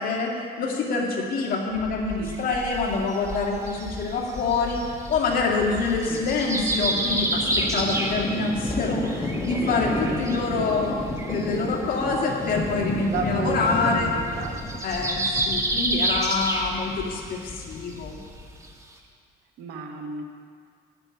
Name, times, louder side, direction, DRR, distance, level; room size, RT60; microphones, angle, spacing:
voice 1, 0.0-4.8 5.1-10.9 11.3-14.1 14.8-18.2, left 4 dB, 60° left, -1 dB, 2.1 m, -26 dB
sound 1, 1.7-18.7, left 1 dB, 15° left, 1.4 m, -33 dB
sound 2, 2.3-2.4 3.1-5.4 5.9-8.5 8.8-10.4 10.9-11.0 11.2-11.4 12.5-12.6 12.8-12.9 13.2-13.4 13.7-13.9 14.2-17.1 17.4-17.5 17.9-18.0 18.6-18.7, right 1 dB, 15° right, 1.3 m, -28 dB
voice 2, 8.1-8.5 9.8-10.7 12.7-14.8 19.6-20.2, right 5 dB, 75° right, 3 dB, 1.3 m, -34 dB
12.0 x 9.5 x 4.6 m, 2.2 s
cardioid pair, 110°, 17 cm